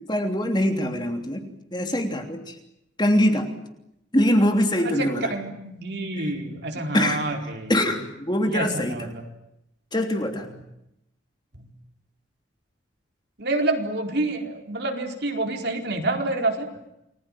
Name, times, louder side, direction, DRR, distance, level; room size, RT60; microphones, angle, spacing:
voice 1, 0.1-2.6 3.0-3.5 4.1-5.3 6.2-6.3 6.9-7.2 7.7-9.1 9.9-10.5, equal, 20° left, 4 dB, 3.1 m, -23 dB
voice 2, 4.8-7.7 8.5-9.3 10.5-10.6 11.5-11.7 13.4-16.7, right 2 dB, 55° right, 3 dB, 4.4 m, -28 dB
29.5 x 21.0 x 9.1 m, 0.83 s
head